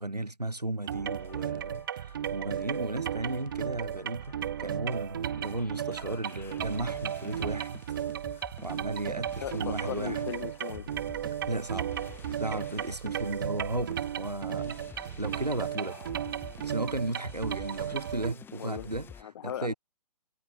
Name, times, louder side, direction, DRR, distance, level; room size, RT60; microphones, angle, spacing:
voice 1, 0.0-7.8 8.6-10.3 11.4-11.9 12.4-16.0 16.6-19.1 19.4-19.7, right 2 dB, 85° right, 7.5 m, -35 dB
sound 1, 0.8-19.2, left 7 dB, 10° left, 4.6 m, -51 dB
sound 2, 0.9-18.3, right 10 dB, 35° right, 0.4 m, -35 dB
voice 2, 9.4-10.9 15.9-16.1 18.6-18.9 19.2-19.7, left 10 dB, 45° left, 6.7 m, -38 dB
figure-of-eight pair, 130°, 20 cm